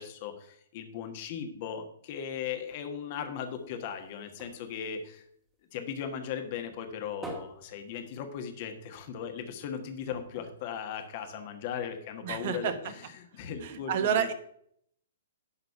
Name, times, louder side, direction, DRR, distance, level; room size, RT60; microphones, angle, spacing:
voice 1, 0.0-5.2 5.7-14.3, left 8 dB, 45° left, 6 dB, 1.4 m, -38 dB
sound 1, 3.5-6.1 6.5-8.7 9.1-9.2 9.5-9.6 10.1-11.6 12.2-12.3, right 2 dB, 10° right, 1.7 m, -48 dB
voice 2, 12.2-12.7 13.6-14.3, right 8 dB, 50° right, 10 dB, 1.1 m, -29 dB
11.0 x 4.0 x 5.8 m, 0.69 s
figure-of-eight pair, 120°, 0 cm